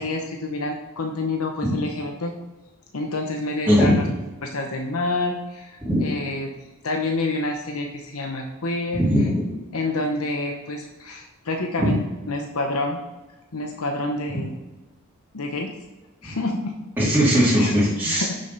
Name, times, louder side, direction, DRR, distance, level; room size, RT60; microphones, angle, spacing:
voice 1, 0.0-2.3 2.9-4.0 4.4-6.5 6.8-9.0 9.7-12.0 12.3-13.0 13.5-14.5 15.3-15.7 16.2-16.7 17.6-17.7 18.1-18.4, left 2 dB, 85° left, 2 dB, 1.0 m, -28 dB
voice 2, 3.7-4.0 5.8-6.0 8.9-9.4 11.8-11.9 17.0-18.3, equal, 10° right, -9 dB, 2.5 m, -19 dB
10.0 x 6.5 x 4.0 m, 1.1 s
head